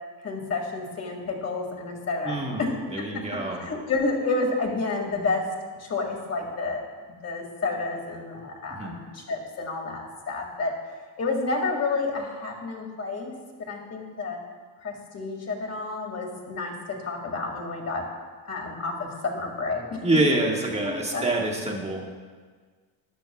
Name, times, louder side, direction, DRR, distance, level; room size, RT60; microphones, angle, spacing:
voice 1, 0.2-3.1 3.6-5.4 5.8-6.8 7.2-10.7 11.2-13.3 13.7-14.4 14.8-18.0 18.4-20.0 20.8-21.2, left 3 dB, 30° left, 1 dB, 2.1 m, -30 dB
voice 2, 2.2-2.6 2.9-3.6 8.7-9.0 20.0-22.0, right 2 dB, 15° right, -1 dB, 1.5 m, -26 dB
13.5 x 10.0 x 2.3 m, 1.5 s
cardioid pair, 115°, 49 cm